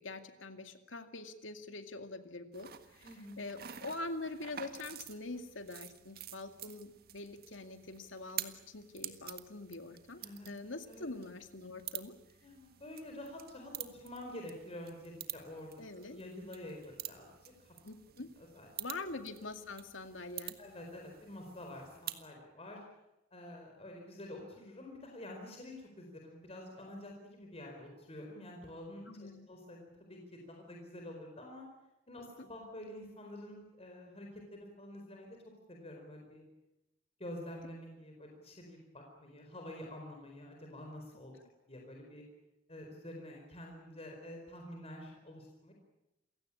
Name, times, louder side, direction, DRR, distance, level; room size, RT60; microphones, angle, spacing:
voice 1, 0.0-3.1 3.4-12.1 15.8-16.2 17.8-18.3 18.8-20.6 29.1-29.5, left 2 dB, 85° left, 7 dB, 2.2 m, -44 dB
sound 1, 2.5-22.3, right 11 dB, 55° right, 1.7 m, -48 dB
voice 2, 3.0-3.4 3.7-3.8 10.2-10.5 10.9-11.1 12.4-17.7 18.4-18.7 20.6-22.8 23.3-31.7 32.1-35.3 35.7-36.4 37.2-41.3 41.7-42.2 42.7-45.7, left 1 dB, 35° left, 1 dB, 4.5 m, -48 dB
28.5 x 17.0 x 8.7 m, 0.94 s
head